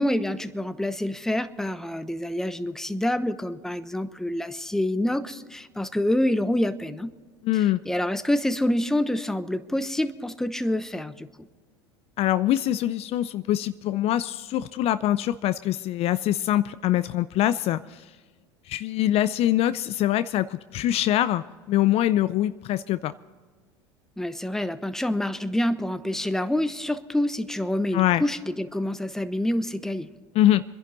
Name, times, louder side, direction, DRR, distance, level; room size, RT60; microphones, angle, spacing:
voice 1, 0.0-7.1 7.5-11.3 24.2-30.1, left 1 dB, 5° left, 11 dB, 0.9 m, -27 dB
voice 2, 7.4-7.8 12.2-18.0 18.7-23.1 27.9-28.2 30.3-30.6, left 13 dB, 45° left, 14 dB, 0.5 m, -24 dB
25.5 x 11.0 x 4.0 m, 1.4 s
hypercardioid pair, 85°, 14 cm